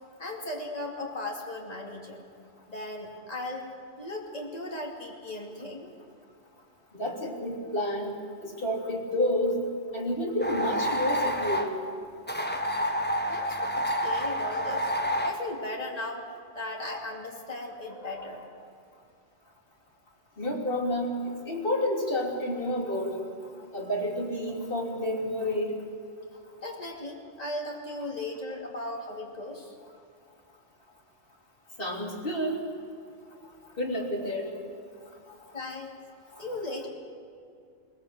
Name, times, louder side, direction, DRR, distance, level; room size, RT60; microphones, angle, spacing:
voice 1, 0.2-2.2 2.7-3.7 4.0-5.9 13.3-14.9 15.2-16.3 16.5-18.5 26.6-29.7 35.5-36.0 36.4-36.9, left 2 dB, 35° left, 0 dB, 2.8 m, -37 dB
voice 2, 6.9-8.1 8.4-9.6 9.9-11.7 20.4-23.1 23.7-25.7 31.8-32.6 33.8-34.5 36.3-36.4, left 1 dB, 50° left, -1 dB, 3.4 m, -29 dB
sound 1, 10.4-11.7 12.3-15.4, equal, 10° left, 1.3 m, -28 dB
21.5 x 19.0 x 7.6 m, 2.4 s
omnidirectional pair, 1.2 m